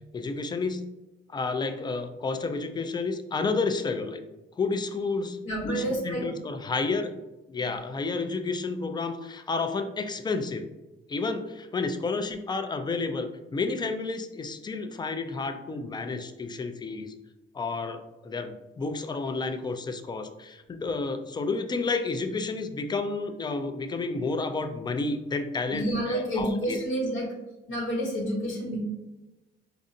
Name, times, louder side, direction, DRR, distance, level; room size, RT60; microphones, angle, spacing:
voice 1, 0.1-0.8 1.3-4.2 4.6-5.4 5.6-7.1 7.5-10.7 11.1-17.1 17.5-26.8, left 3 dB, 20° left, 8 dB, 0.4 m, -31 dB
voice 2, 5.4-6.3 25.7-27.3 27.7-28.8, right 1 dB, 80° left, -2 dB, 1.0 m, -29 dB
4.1 x 2.5 x 2.6 m, 1.0 s
cardioid pair, 90°, 20 cm